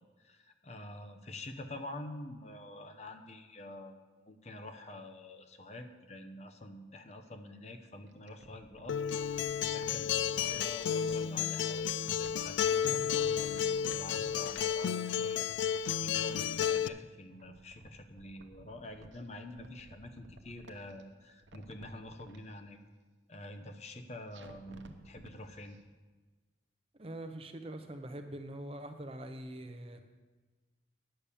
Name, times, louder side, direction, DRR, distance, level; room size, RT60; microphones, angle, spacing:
voice 1, 0.0-4.0 4.2-9.0 9.3-9.4 9.7-22.8 23.3-25.8, left 1 dB, 35° left, 6 dB, 0.8 m, -47 dB
Mic Blocked Long, 8.1-11.2 11.7-14.9 15.2-17.0 17.3-19.2 19.5-21.0 21.4-22.4 24.3-25.3 25.7-25.8, right 1 dB, 80° right, 0.9 m, -55 dB
Acoustic guitar, 8.9-16.9, left 8 dB, 80° left, 0.3 m, -32 dB
voice 2, 27.0-30.0, right 1 dB, 30° right, 7 dB, 0.7 m, -43 dB
10.0 x 7.1 x 6.8 m, 1.3 s
head